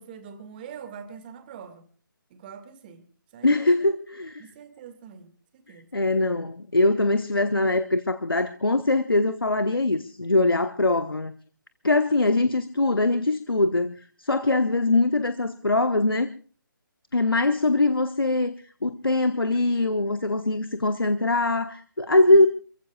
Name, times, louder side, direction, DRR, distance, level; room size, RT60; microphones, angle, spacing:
voice 1, 0.0-1.9 2.3-3.1 3.3-3.6 4.4-5.9 22.3-22.5, right 7 dB, 25° right, 2.0 m, -44 dB
voice 2, 3.4-4.5 5.9-11.3 11.8-16.3 17.1-18.5 18.8-22.5, left 2 dB, 85° left, 1.1 m, -22 dB
28.5 x 15.5 x 2.4 m
figure-of-eight pair, 145°, 12 cm